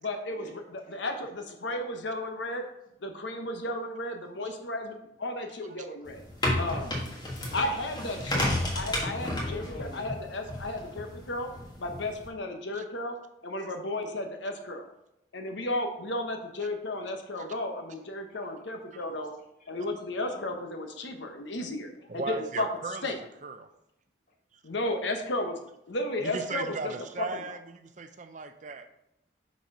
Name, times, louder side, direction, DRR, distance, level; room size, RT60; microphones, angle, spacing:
voice 1, 0.0-0.6 0.9-2.7 3.0-6.2 6.6-6.9 7.5-8.5 8.7-11.5 11.8-13.2 13.4-14.9 15.3-19.3 19.7-22.7 23.0-23.2 24.6-25.6 25.9-27.4, left 1 dB, 70° left, 5 dB, 0.9 m, -34 dB
voice 2, 1.7-2.0 6.9-7.9 9.1-10.1 17.0-17.1 18.3-18.4 18.7-19.0 19.6-19.7 20.0-20.6 22.0-22.1 24.3-24.4 28.8-28.9, left 1 dB, 45° left, 0 dB, 1.4 m, -49 dB
sound 1, 6.1-12.3, left 1 dB, 20° left, 1.4 m, -32 dB
voice 3, 22.1-23.1 23.4-23.7 24.5-24.6 26.2-28.9, right 4 dB, 40° right, 9 dB, 0.5 m, -37 dB
6.0 x 4.2 x 5.4 m, 0.83 s
head